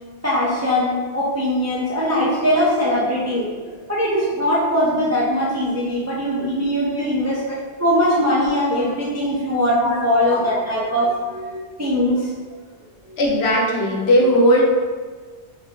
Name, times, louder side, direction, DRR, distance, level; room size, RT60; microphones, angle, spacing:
voice 1, 0.2-3.6 3.9-7.4 7.8-12.3, equal, 25° right, -7 dB, 0.4 m, -21 dB
voice 2, 13.2-14.6, equal, 70° left, -2 dB, 1.0 m, -18 dB
3.4 x 3.3 x 2.9 m, 1.5 s
omnidirectional pair, 1.1 m